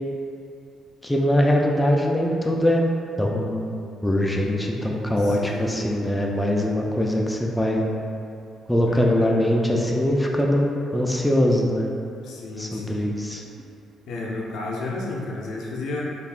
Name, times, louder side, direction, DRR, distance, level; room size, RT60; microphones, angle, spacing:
voice 1, 1.0-2.8 3.2-3.7 4.0-7.9 8.7-11.9 12.6-13.4, left 1 dB, 10° left, -1 dB, 0.3 m, -22 dB
voice 2, 5.2-5.8 8.9-9.4 12.2-13.0 14.1-16.0, left 3 dB, 80° left, -3 dB, 0.5 m, -31 dB
3.4 x 2.4 x 2.4 m, 2.5 s
cardioid pair, 90°, 0 cm